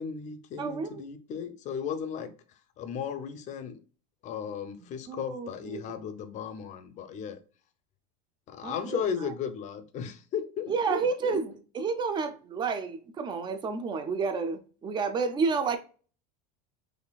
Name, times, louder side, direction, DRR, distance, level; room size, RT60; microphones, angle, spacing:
voice 1, 0.0-2.3 2.8-3.8 4.2-7.4 8.5-11.4, left 7 dB, 35° left, 0.6 m, -35 dB
voice 2, 0.6-1.0 5.1-5.8 8.6-9.3 10.7-15.8, right 5 dB, 20° right, 0.5 m, -30 dB
4.2 x 3.2 x 2.3 m
supercardioid pair, 145°, 20 cm